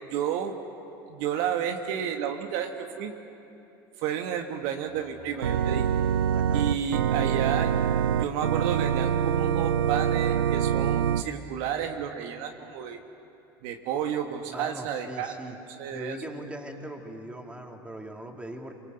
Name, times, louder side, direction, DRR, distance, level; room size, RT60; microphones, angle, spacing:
voice 1, 0.1-0.5 1.1-3.1 4.0-5.9 6.5-7.7 8.1-13.0 13.6-15.3 15.8-16.2, right 9 dB, 65° right, 5 dB, 1.6 m, -31 dB
sound 1, 4.9-10.2, left 2 dB, 15° left, 2.3 m, -46 dB
Organ, 5.4-11.2, right 9 dB, 85° right, 0.6 m, -25 dB
voice 2, 6.3-6.7 14.4-15.5 15.9-18.7, right 1 dB, 10° right, 2 dB, 3.1 m, -40 dB
27.5 x 23.0 x 7.9 m, 2.9 s
hypercardioid pair, 80°, 12 cm